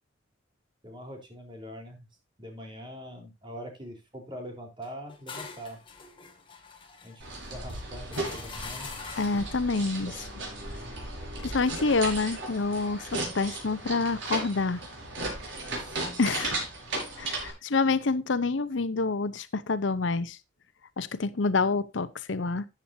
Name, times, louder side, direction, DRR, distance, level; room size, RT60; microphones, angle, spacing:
voice 1, 0.8-2.1 2.4-5.8 7.0-8.9 15.7-16.0, equal, 25° right, 3.8 m, -43 dB
sound 1, 4.8-9.5, left 5 dB, 30° left, 2.2 m, -44 dB
sound 2, 7.2-17.5, right 2 dB, 85° right, 5.9 m, -36 dB
voice 2, 9.2-10.3 11.4-14.8 16.2-16.6 17.2-20.4 21.0-22.7, left 3 dB, 75° left, 0.7 m, -27 dB
13.5 x 8.9 x 2.7 m
head